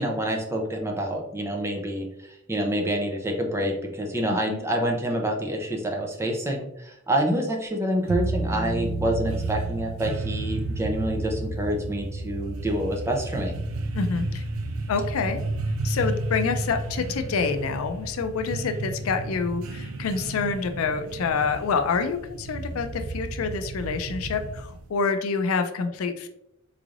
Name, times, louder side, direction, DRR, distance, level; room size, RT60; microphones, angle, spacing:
voice 1, 0.0-2.0 2.5-13.6, right 1 dB, 15° right, 1 dB, 0.5 m, -27 dB
voice 2, 4.3-4.6 13.9-14.4 14.9-15.4 15.8-26.3, left 5 dB, 85° left, 8 dB, 0.4 m, -27 dB
sound 1, 8.1-24.9, right 2 dB, 85° right, 0.4 m, -32 dB
3.7 x 3.2 x 2.4 m, 0.80 s
head